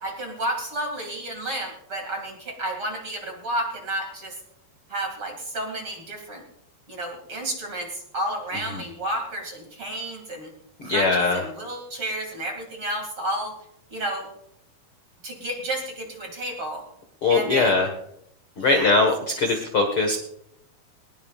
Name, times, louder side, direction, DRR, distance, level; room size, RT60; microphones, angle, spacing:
voice 1, 0.0-4.4 4.9-6.4 6.9-10.5 10.8-13.5 13.9-14.3 15.2-16.8 17.3-17.8 18.6-19.1 19.3-19.4, right 1 dB, 35° right, 2 dB, 2.5 m, -31 dB
voice 2, 10.9-11.4 17.2-17.9 18.6-20.2, left 3 dB, 75° left, 3 dB, 1.2 m, -21 dB
20.5 x 20.5 x 2.4 m, 0.76 s
omnidirectional pair, 5.0 m